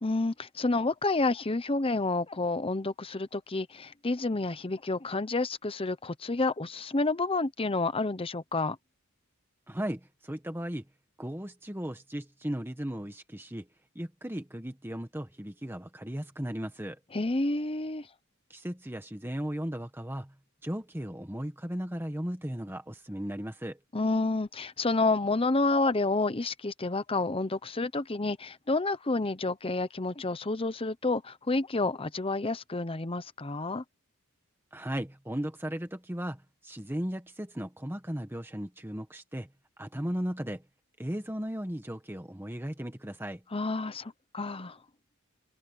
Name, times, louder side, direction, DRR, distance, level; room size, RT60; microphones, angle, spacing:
voice 1, 0.0-8.8 17.1-18.1 23.9-33.8 43.5-44.8, left 3 dB, 25° left, 0.9 m, -29 dB
voice 2, 9.7-10.9 11.2-13.7 13.9-17.0 18.5-20.3 20.6-23.8 34.7-39.5 39.8-40.6 41.0-43.4, equal, 10° right, 1.4 m, -36 dB
head